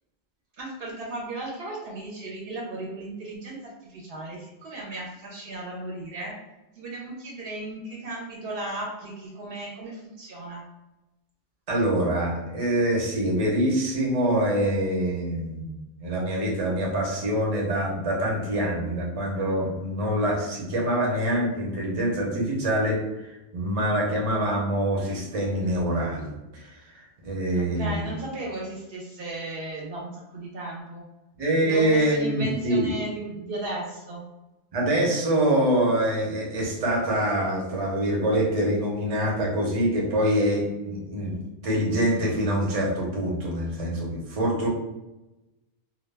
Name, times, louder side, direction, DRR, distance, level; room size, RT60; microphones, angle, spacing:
voice 1, 0.6-6.3 6.8-10.6 27.6-31.0 31.6-34.2, right 2 dB, 70° right, -2 dB, 0.8 m, -35 dB
voice 2, 11.7-26.7 27.2-28.0 31.4-32.9 34.7-44.7, right 1 dB, 40° right, -2 dB, 0.7 m, -25 dB
2.2 x 2.1 x 3.3 m, 1.0 s
omnidirectional pair, 1.0 m